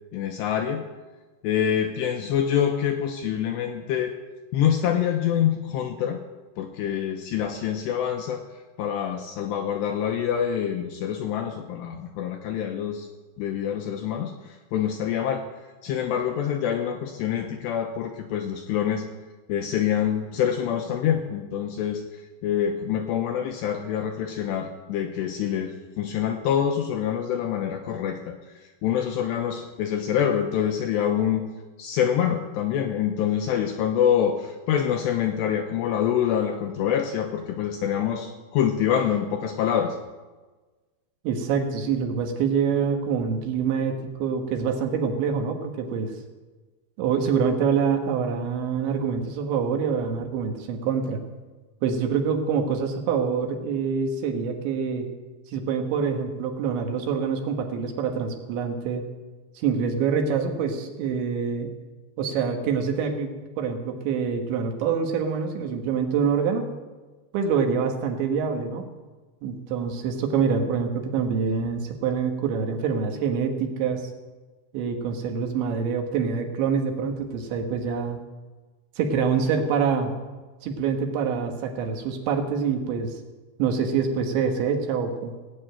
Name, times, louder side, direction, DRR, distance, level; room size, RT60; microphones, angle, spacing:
voice 1, 0.1-0.8 1.4-4.2 4.5-6.2 6.6-8.4 8.8-13.1 13.4-15.5 15.8-19.0 19.5-22.0 22.4-31.5 31.8-40.0, left 9 dB, 80° left, 4 dB, 2.5 m, -26 dB
voice 2, 41.2-46.1 47.0-51.2 51.8-55.1 55.5-59.1 59.6-61.7 62.2-66.7 67.3-68.9 69.4-74.1 74.7-78.2 79.0-80.1 80.6-83.1 83.6-85.3, right 6 dB, 70° right, 4 dB, 3.4 m, -25 dB
17.5 x 7.6 x 8.9 m, 1.3 s
omnidirectional pair, 5.8 m